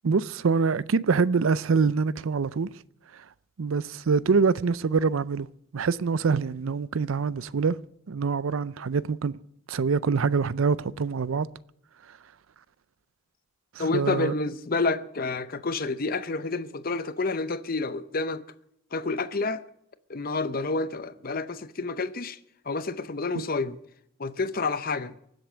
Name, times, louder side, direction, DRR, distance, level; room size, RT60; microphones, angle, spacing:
voice 1, 0.0-2.7 3.6-5.5 5.7-7.8 8.1-9.4 9.7-11.5 13.8-14.3 23.4-23.5, right 5 dB, 80° right, 0.5 m, -25 dB
voice 2, 13.8-18.4 18.9-19.6 20.1-22.4 22.7-23.8 24.2-25.1, left 3 dB, 45° left, 0.7 m, -29 dB
23.5 x 7.9 x 6.2 m
head